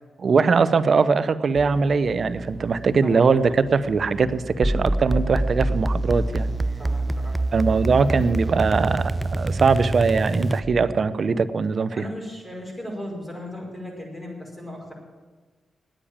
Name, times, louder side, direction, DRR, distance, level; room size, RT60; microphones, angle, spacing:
voice 1, 0.2-6.5 7.5-11.9, right 5 dB, 55° right, 14 dB, 0.7 m, -21 dB
sound 1, 1.5-10.3, right 4 dB, 40° right, 2.2 m, -37 dB
sound 2, 4.6-11.0, right 1 dB, 15° right, 0.4 m, -26 dB
voice 2, 6.8-7.5 11.9-14.9, left 1 dB, 15° left, -1 dB, 5.3 m, -36 dB
9.9 x 8.9 x 8.8 m, 1.4 s
cardioid pair, 60°, 0 cm